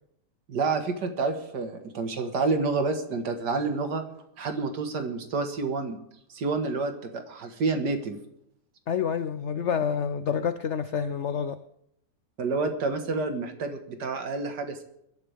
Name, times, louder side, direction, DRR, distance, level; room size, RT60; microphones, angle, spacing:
voice 1, 0.5-4.0 4.4-6.0 6.3-8.2 12.4-14.8, right 4 dB, 70° right, 6 dB, 2.2 m, -29 dB
voice 2, 8.9-11.6, left 7 dB, 70° left, 12 dB, 0.6 m, -28 dB
22.0 x 11.0 x 3.5 m, 0.76 s
omnidirectional pair, 1.9 m